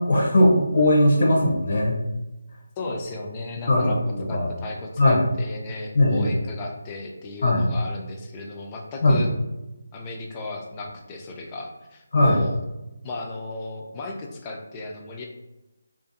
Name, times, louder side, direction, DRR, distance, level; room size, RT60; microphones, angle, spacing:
voice 1, 0.0-2.0 3.7-4.0 4.3-4.5 5.0-5.2 5.9-6.3 7.4-7.6 9.0-9.2 12.1-12.4, left 1 dB, 55° left, -1 dB, 0.6 m, -19 dB
voice 2, 2.8-4.0 4.3-9.3 9.9-12.6 13.0-15.3, left 2 dB, 20° left, 1 dB, 0.3 m, -35 dB
2.4 x 2.4 x 2.6 m, 0.99 s
figure-of-eight pair, 160°, 0 cm